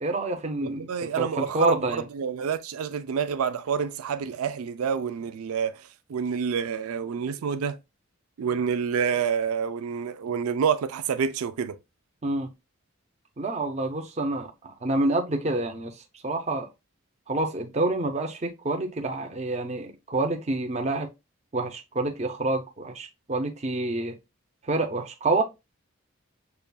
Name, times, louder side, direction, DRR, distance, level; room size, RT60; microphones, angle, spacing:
voice 1, 0.0-2.0 12.2-12.5 13.4-16.7 17.3-21.1 21.5-24.2 24.6-25.4, right 2 dB, 30° right, 0.5 m, -28 dB
voice 2, 0.6-5.8 6.1-7.8 8.4-11.8, right 7 dB, 80° right, 0.4 m, -28 dB
6.7 x 2.4 x 2.2 m
head